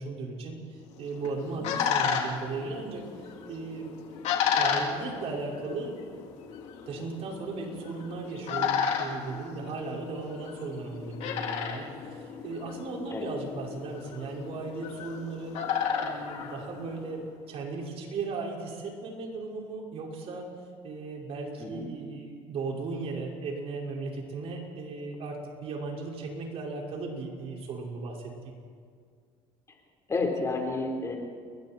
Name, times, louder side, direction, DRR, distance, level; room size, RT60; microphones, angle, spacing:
voice 1, 0.0-3.9 4.6-6.0 6.9-20.5 20.8-28.5, right 3 dB, 55° right, -1 dB, 5.4 m, -37 dB
sound 1, 1.0-17.2, left 7 dB, 65° left, 3.5 m, -33 dB
voice 2, 30.1-31.2, left 3 dB, 25° left, 1 dB, 4.4 m, -31 dB
30.0 x 22.0 x 4.5 m, 2.1 s
cardioid pair, 115°, 12 cm